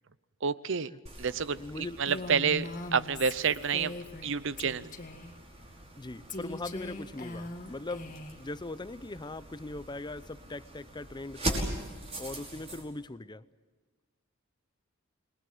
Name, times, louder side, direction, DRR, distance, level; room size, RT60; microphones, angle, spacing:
voice 1, 0.4-0.9 1.2-3.9 4.2-4.9, right 6 dB, 65° right, 16 dB, 0.8 m, -29 dB
sound 1, 1.1-12.8, right 1 dB, 30° right, 5.4 m, -42 dB
voice 2, 1.6-2.0 6.0-11.7 12.2-13.4, left 2 dB, 20° left, 15 dB, 0.7 m, -40 dB
Female speech woman speaking, 2.1-4.3 4.6-5.3 6.3-8.4, left 2 dB, 40° left, 1.9 m, -41 dB
27.5 x 21.0 x 7.8 m, 1.4 s
head